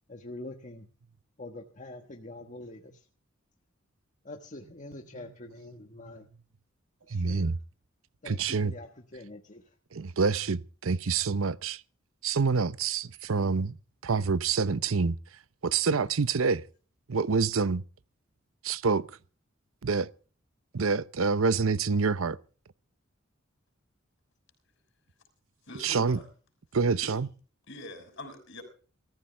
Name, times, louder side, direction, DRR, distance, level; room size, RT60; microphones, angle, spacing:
voice 1, 0.1-0.9 1.4-3.1 4.2-6.3 7.1-7.5 8.2-9.7 16.0-16.1, left 2 dB, 40° left, 1.4 m, -45 dB
voice 2, 7.1-7.6 8.3-8.7 9.9-11.8 12.2-13.8 14.0-15.2 15.6-16.6 17.1-17.8 18.6-19.1 19.8-20.1 20.7-22.4 25.8-26.2 26.7-27.3, right 5 dB, 80° right, 0.7 m, -27 dB
voice 3, 25.6-26.3 27.0-27.1 27.7-28.6, left 2 dB, 60° left, 6.3 m, -44 dB
22.5 x 14.5 x 3.4 m
head